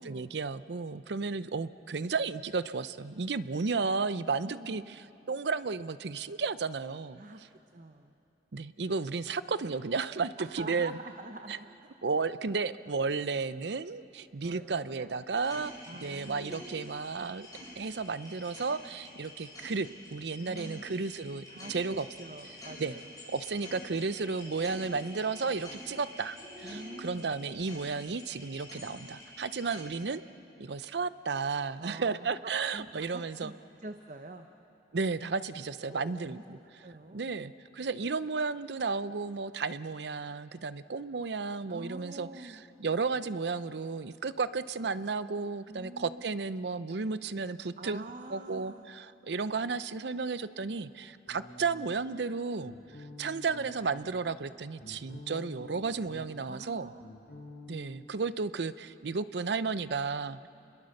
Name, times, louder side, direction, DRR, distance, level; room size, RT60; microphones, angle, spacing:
voice 1, 0.0-7.2 8.5-11.0 11.5-11.6 12.0-15.7 16.0-17.5 17.8-22.1 22.8-23.0 23.3-30.2 30.6-33.5 34.9-36.6 37.1-48.0 48.3-52.7 53.2-56.9 57.7-60.5, right 4 dB, 75° right, 14 dB, 0.6 m, -33 dB
voice 2, 4.4-4.8 7.2-7.4 7.7-8.1 10.4-11.8 14.4-15.2 15.5-16.7 20.4-21.1 21.5-23.1 26.6-27.4 31.8-34.5 35.9-36.4 36.8-37.3 41.7-42.6 45.7-46.2 47.8-48.9 56.4-57.2, right 2 dB, 45° right, 6 dB, 0.8 m, -46 dB
sound 1, 15.3-29.8, left 1 dB, 20° left, 7.5 m, -48 dB
sound 2, 51.3-52.1 52.6-54.1 54.5-56.5 56.7-57.8, left 1 dB, 75° left, 4.7 m, -48 dB
29.5 x 22.0 x 6.5 m, 2.8 s
head